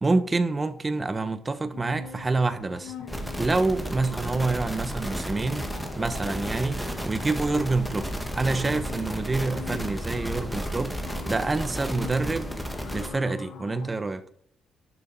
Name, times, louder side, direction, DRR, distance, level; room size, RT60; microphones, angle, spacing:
voice 1, 0.0-2.9 3.4-5.7 6.0-6.8 7.0-10.9 11.3-12.5 12.9-14.2, right 3 dB, 25° right, 1.3 m, -27 dB
sound 1, 1.7-13.9, left 7 dB, 90° left, 1.6 m, -43 dB
sound 2, 3.1-13.1, equal, ahead, 2.1 m, -33 dB
11.5 x 7.1 x 5.6 m
cardioid pair, 90°, 0 cm